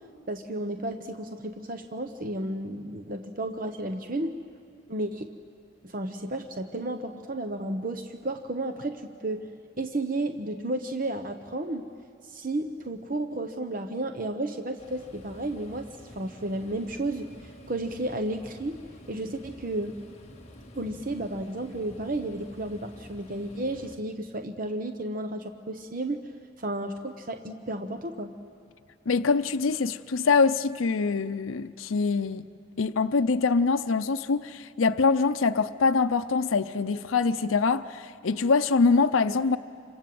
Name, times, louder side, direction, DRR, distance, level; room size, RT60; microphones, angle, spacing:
voice 1, 0.3-4.4 4.9-5.3 5.8-9.5 9.8-11.9 12.2-18.8 19.1-19.9 20.7-28.3, right 1 dB, 45° right, 0.9 m, -33 dB
sound 1, 14.8-24.0, equal, 30° left, 1.9 m, -49 dB
voice 2, 29.1-32.4 32.8-39.6, left 4 dB, 90° left, 0.6 m, -24 dB
28.0 x 26.0 x 7.8 m
head